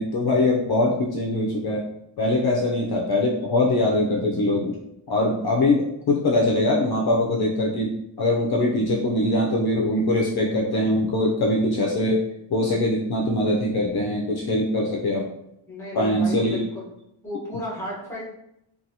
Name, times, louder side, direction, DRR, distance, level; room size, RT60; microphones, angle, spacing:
voice 1, 0.0-1.8 2.2-4.8 5.1-12.2 12.5-15.3 15.9-16.6, left 1 dB, 55° left, -2 dB, 0.5 m, -22 dB
voice 2, 15.7-16.9 17.2-18.2, left 1 dB, 5° left, -6 dB, 1.0 m, -34 dB
2.7 x 2.4 x 2.6 m, 0.80 s
wide cardioid pair, 125°, 46 cm